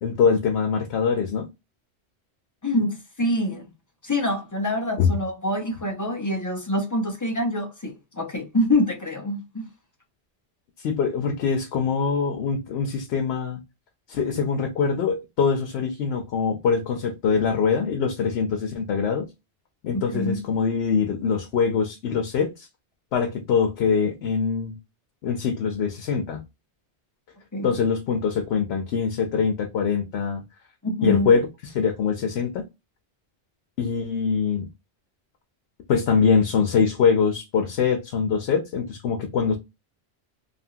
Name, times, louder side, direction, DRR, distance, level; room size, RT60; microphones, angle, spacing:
voice 1, 0.0-1.4 5.0-5.2 10.8-13.6 14.1-19.3 19.8-22.7 23.1-24.8 25.2-26.4 27.6-30.4 31.0-32.6 33.8-34.7 35.9-39.6, left 6 dB, 85° left, 0.9 m, -23 dB
voice 2, 2.6-3.7 4.0-9.7 20.1-20.4 27.5-27.7 30.8-31.3, left 1 dB, 25° left, 0.4 m, -25 dB
2.8 x 2.5 x 2.7 m
omnidirectional pair, 1.1 m